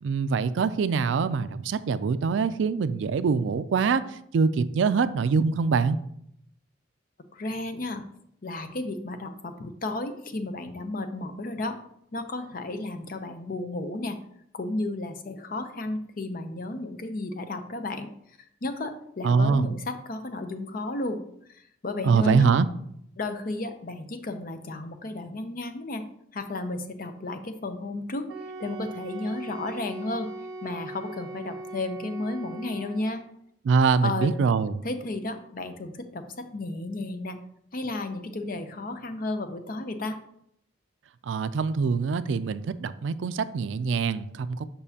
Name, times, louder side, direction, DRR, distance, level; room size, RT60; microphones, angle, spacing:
voice 1, 0.0-4.0 4.3-6.0 19.2-19.7 22.0-22.7 33.7-34.8 41.3-44.7, right 5 dB, 75° right, 14 dB, 0.4 m, -24 dB
voice 2, 7.3-8.0 8.4-11.8 12.1-14.2 14.5-18.1 18.6-21.2 21.5-22.5 23.2-26.0 26.3-28.3 28.6-30.3 30.6-33.2 34.0-34.3 34.8-37.4 37.7-40.2, left 2 dB, 50° left, 8 dB, 0.6 m, -33 dB
Wind instrument woodwind instrument, 28.3-33.2, right 2 dB, 55° right, 1.3 m, -40 dB
6.9 x 5.4 x 2.8 m, 0.72 s
head